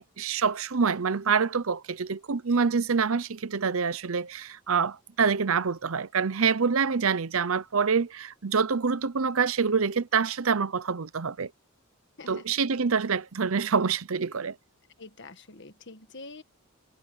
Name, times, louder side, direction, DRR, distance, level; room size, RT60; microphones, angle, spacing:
voice 1, 0.0-11.5 12.3-14.5, right 5 dB, 75° right, 0.8 m, -26 dB
voice 2, 15.0-16.4, left 3 dB, 55° left, 1.7 m, -46 dB
head